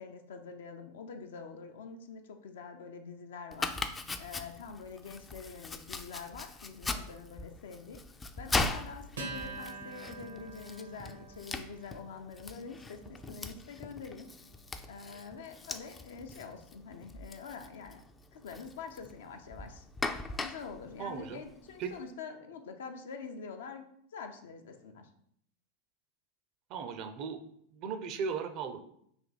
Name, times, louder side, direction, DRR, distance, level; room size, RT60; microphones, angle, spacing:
voice 1, 0.0-3.8 4.2-8.0 8.4-14.3 14.9-18.0 18.3-19.8 20.4-23.8 24.1-25.1, left 5 dB, 75° left, 6 dB, 0.5 m, -45 dB
Domestic sounds home sounds, 3.5-22.0, left 3 dB, 15° left, 0.3 m, -40 dB
Acoustic guitar, 9.2-16.0, right 4 dB, 85° right, 0.9 m, -48 dB
voice 2, 21.0-21.4 21.8-21.9 26.7-27.4 27.7-28.8, right 6 dB, 50° right, 9 dB, 0.5 m, -37 dB
3.4 x 2.7 x 3.9 m, 0.70 s
hypercardioid pair, 95°, 0 cm